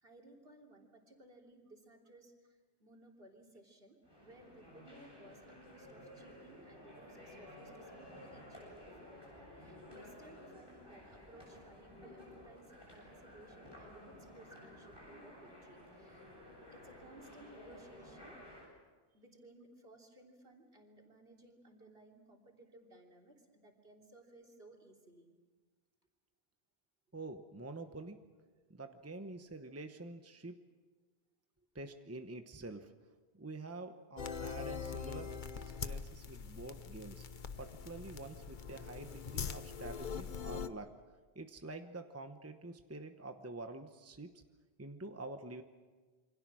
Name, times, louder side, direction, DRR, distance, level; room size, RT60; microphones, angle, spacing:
voice 1, 0.0-16.3 16.7-18.4 19.1-25.4, right 1 dB, 65° right, 1 dB, 3.4 m, -59 dB
sound 1, 4.0-18.7, left 1 dB, 20° left, 8.0 m, -54 dB
voice 2, 27.1-28.2 28.7-30.5 31.7-32.9 33.3-35.4 35.8-37.2 37.6-40.9 41.3-44.4 44.8-45.6, right 2 dB, 15° right, 7 dB, 1.0 m, -47 dB
sound 2, 34.2-40.7, left 6 dB, 50° left, 1.0 m, -43 dB
28.0 x 24.5 x 6.3 m, 1.4 s
omnidirectional pair, 1.1 m